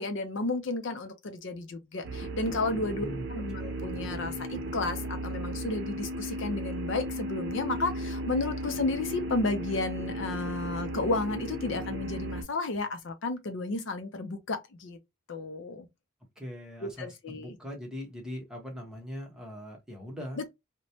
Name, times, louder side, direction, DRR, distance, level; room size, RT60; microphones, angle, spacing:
voice 1, 0.0-15.0 15.3-15.9 16.8-17.6, left 2 dB, 60° left, 0.5 m, -32 dB
sound 1, 2.0-12.4, right 1 dB, 55° right, 0.6 m, -35 dB
voice 2, 16.4-20.5, left 1 dB, 5° right, 0.9 m, -41 dB
3.0 x 2.1 x 2.7 m
head